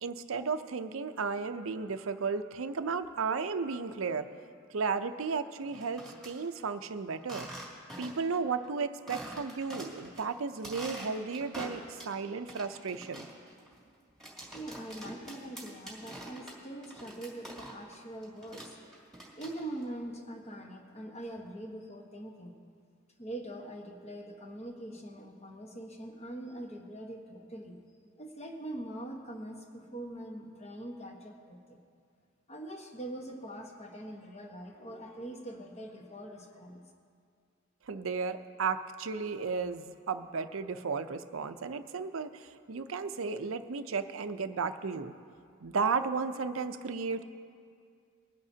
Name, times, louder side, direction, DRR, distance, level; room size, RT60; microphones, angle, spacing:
voice 1, 0.0-4.3 4.7-7.5 8.0-13.3 37.9-45.1 45.6-47.2, right 5 dB, 70° right, 10 dB, 0.6 m, -34 dB
sound 1, 5.6-6.3 7.2-8.3 8.6-8.7 9.1-10.2 10.5-12.2 12.5-18.0 18.2-19.8, right 1 dB, ahead, 2.4 m, -45 dB
voice 2, 14.5-18.8 19.4-22.6 23.2-27.8 28.2-31.8 32.5-36.8, right 1 dB, 30° left, 1 dB, 1.2 m, -43 dB
22.0 x 10.5 x 2.8 m, 2.2 s
head